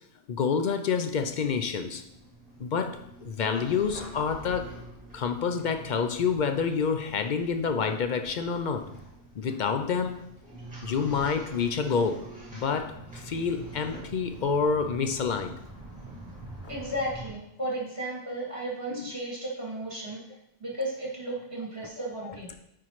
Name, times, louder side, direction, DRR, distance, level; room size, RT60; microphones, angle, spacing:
voice 1, 0.3-2.0 2.6-4.7 5.1-8.9 9.3-10.3 10.8-12.2 12.5-15.6 18.9-19.1 22.2-22.3, left 6 dB, 55° left, 7 dB, 0.5 m, -28 dB
sound 1, 1.1-17.3, right 2 dB, 5° right, 2.2 m, -45 dB
voice 2, 16.7-20.2 20.6-22.6, right 1 dB, 25° right, -4 dB, 2.1 m, -34 dB
9.8 x 4.5 x 3.1 m, 0.80 s
omnidirectional pair, 1.3 m